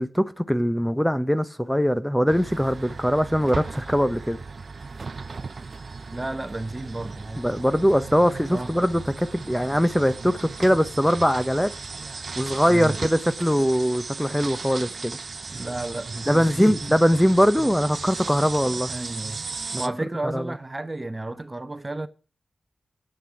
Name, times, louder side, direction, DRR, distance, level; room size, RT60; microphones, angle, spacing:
voice 1, 0.0-4.4 7.4-11.7 12.4-15.2 16.3-18.9 19.7-19.8 20.3-20.5, equal, 5° left, 1.0 m, -22 dB
sound 1, 2.3-19.9, right 4 dB, 65° right, 0.7 m, -36 dB
voice 2, 6.1-7.5 8.5-8.7 12.7-13.0 15.5-17.0 18.9-19.4 19.8-22.1, right 2 dB, 30° right, 1.0 m, -32 dB
8.9 x 6.8 x 7.9 m
cardioid pair, 40°, 0 cm